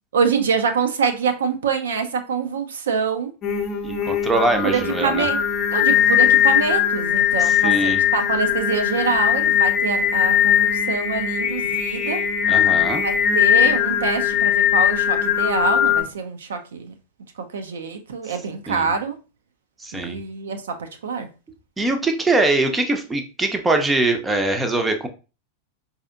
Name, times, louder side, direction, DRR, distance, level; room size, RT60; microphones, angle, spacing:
voice 1, 0.1-3.3 4.6-5.4 5.7-12.2 13.0-16.9 17.5-19.2 19.9-21.3, right 5 dB, 65° right, 0.5 m, -25 dB
Singing, 3.4-16.0, left 9 dB, 30° left, 0.6 m, -20 dB
voice 2, 3.8-5.3 7.4-8.0 12.5-13.0 18.3-18.4 18.7-18.9 19.8-20.2 21.8-25.1, right 2 dB, 10° right, 0.6 m, -22 dB
4.7 x 2.8 x 2.4 m
figure-of-eight pair, 90°, 0 cm